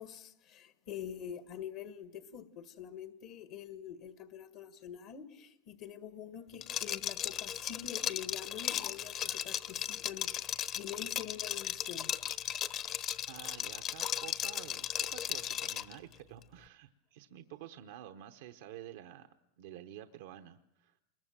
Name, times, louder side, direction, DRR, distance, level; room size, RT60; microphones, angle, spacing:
voice 1, 0.0-12.1, left 9 dB, 65° left, 1.8 m, -46 dB
Liquid, 6.6-15.9, left 10 dB, 45° left, 1.1 m, -36 dB
voice 2, 13.3-19.3 19.6-21.0, right 11 dB, 75° right, 1.0 m, -50 dB
29.0 x 22.0 x 7.5 m
hypercardioid pair, 105°, 0 cm